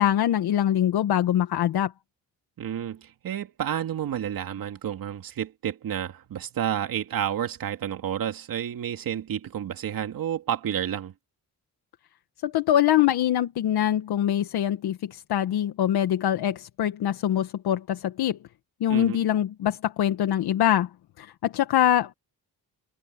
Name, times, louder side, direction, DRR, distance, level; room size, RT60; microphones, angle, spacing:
voice 1, 0.0-1.9 12.4-18.4 18.8-20.9 21.2-22.1, left 11 dB, 80° left, 1.4 m, -23 dB
voice 2, 2.6-11.1 18.9-19.2, right 10 dB, 60° right, 2.6 m, -30 dB
cardioid pair, 130°, 38 cm